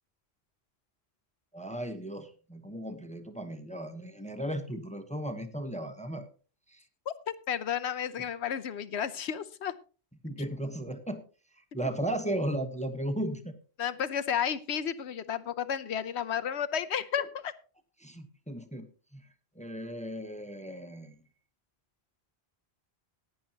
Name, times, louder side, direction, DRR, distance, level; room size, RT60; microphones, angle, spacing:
voice 1, 1.5-6.3 6.7-6.8 10.2-11.2 11.7-13.5 17.2-17.3 18.0-18.9 19.1-19.3 19.5-21.2, right 1 dB, 5° left, 7 dB, 1.1 m, -36 dB
voice 2, 7.1-9.7 11.8-11.9 13.8-17.5, left 8 dB, 90° left, 12 dB, 1.1 m, -32 dB
17.5 x 10.0 x 2.9 m, 0.37 s
omnidirectional pair, 1.1 m